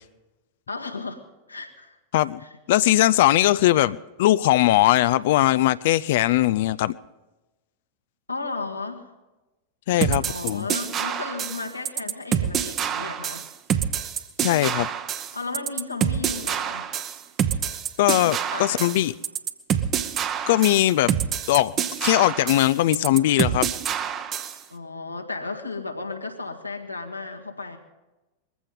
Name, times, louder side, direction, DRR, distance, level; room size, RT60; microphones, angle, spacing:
voice 1, 0.7-1.2 1.5-2.0 2.4-2.6 8.3-9.1 10.2-13.5 15.3-16.9 18.1-18.9 24.7-27.8, left 3 dB, 85° left, 3 dB, 1.8 m, -34 dB
voice 2, 2.7-7.0 9.9-10.7 14.4-14.9 18.0-19.1 20.5-21.1 21.5-21.7 22.0-23.7, left 15 dB, 55° left, 16 dB, 0.4 m, -20 dB
sound 1, 10.0-24.6, right 9 dB, 30° right, 1.0 m, -27 dB
21.5 x 15.5 x 3.8 m, 1.1 s
figure-of-eight pair, 90°, 0 cm